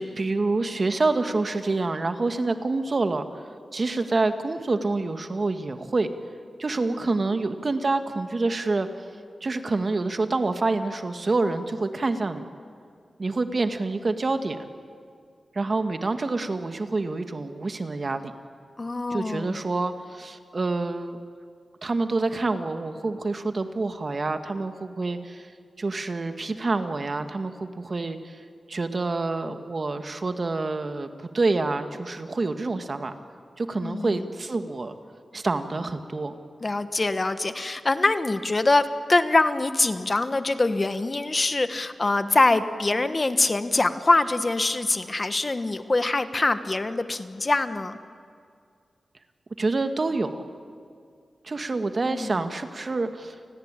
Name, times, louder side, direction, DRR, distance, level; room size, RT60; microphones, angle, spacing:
voice 1, 0.0-3.2 3.7-6.1 6.6-8.9 9.4-12.5 13.2-14.6 15.5-18.3 19.1-21.2 21.8-25.5 25.8-28.4 28.7-33.1 33.6-34.9 35.3-36.4 49.6-50.4 51.4-53.4, right 3 dB, 50° right, 8 dB, 1.8 m, -27 dB
voice 2, 18.8-19.6 33.8-34.3 36.6-48.0 52.1-52.5, left 2 dB, 40° left, 10 dB, 1.3 m, -24 dB
29.5 x 20.0 x 9.1 m, 2.2 s
cardioid pair, 70°, 0 cm